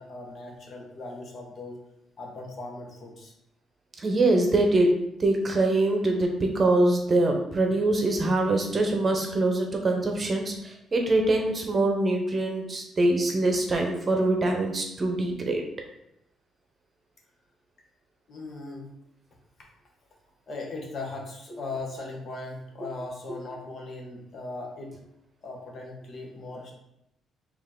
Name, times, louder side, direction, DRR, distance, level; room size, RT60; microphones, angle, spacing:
voice 1, 0.0-1.8 2.2-3.3 18.3-18.9 20.5-24.9 25.4-26.7, left 2 dB, 50° left, -1 dB, 1.2 m, -38 dB
voice 2, 4.0-4.9 5.2-15.6, right 2 dB, 35° right, 3 dB, 0.9 m, -24 dB
4.5 x 2.9 x 3.7 m, 0.83 s
cardioid pair, 90°, 0 cm